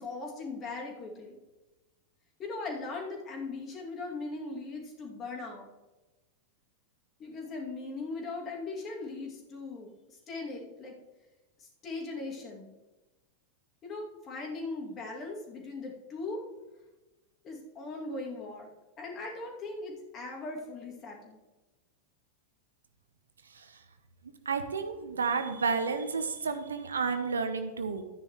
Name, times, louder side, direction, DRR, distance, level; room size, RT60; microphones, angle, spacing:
voice 1, 0.0-1.4 2.4-5.7 7.2-11.0 11.6-12.7 13.8-16.4 17.4-18.7 19.0-21.4, left 3 dB, 30° left, 0 dB, 2.6 m, -39 dB
voice 2, 24.5-28.0, right 5 dB, 70° right, 8 dB, 0.9 m, -31 dB
12.5 x 9.7 x 3.2 m, 1.1 s
figure-of-eight pair, 90°, 0 cm